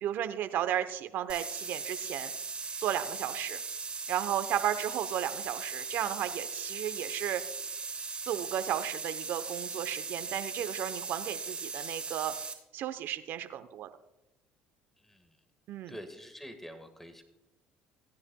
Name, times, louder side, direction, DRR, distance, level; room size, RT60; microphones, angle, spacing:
voice 1, 0.0-2.3 2.8-3.6 4.1-7.4 8.3-12.3 12.7-13.9 15.7-15.9, right 11 dB, 65° right, 10 dB, 0.8 m, -34 dB
sound 1, 1.3-12.5, right 4 dB, 25° right, 3.1 m, -39 dB
voice 2, 15.0-15.4 15.9-17.2, equal, 5° left, 7 dB, 1.6 m, -47 dB
18.0 x 9.7 x 2.3 m, 0.94 s
supercardioid pair, 80°, 4 cm